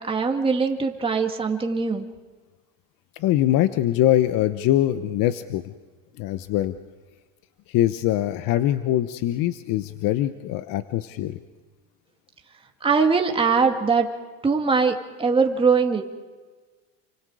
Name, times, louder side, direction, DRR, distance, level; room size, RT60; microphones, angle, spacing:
voice 1, 0.0-2.1 12.8-14.1 14.4-16.0, right 5 dB, 15° right, 2 dB, 2.2 m, -21 dB
voice 2, 3.2-5.7 6.2-6.7 7.7-11.4, left 13 dB, 55° left, 11 dB, 1.0 m, -23 dB
29.5 x 25.0 x 4.9 m, 1.4 s
supercardioid pair, 130°, 40 cm